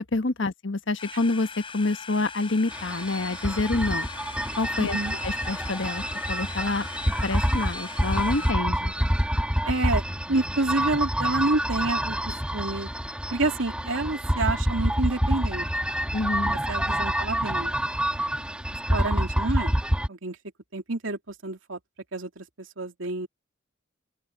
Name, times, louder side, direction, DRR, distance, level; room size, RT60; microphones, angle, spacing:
voice 1, 0.0-4.1 4.6-6.9 7.2-8.9 16.1-16.6, left 3 dB, 70° left, 1.3 m, -27 dB
sound 1, 1.0-8.5, left 5 dB, 25° left, 6.4 m, -41 dB
sound 2, 2.7-20.1, equal, 5° right, 2.1 m, -27 dB
voice 2, 4.8-5.2 9.7-10.0 10.3-12.9 13.3-15.7 16.5-17.8 18.9-19.7 20.1-20.4 20.7-21.8 22.1-23.3, right 2 dB, 85° right, 2.8 m, -28 dB
open air
head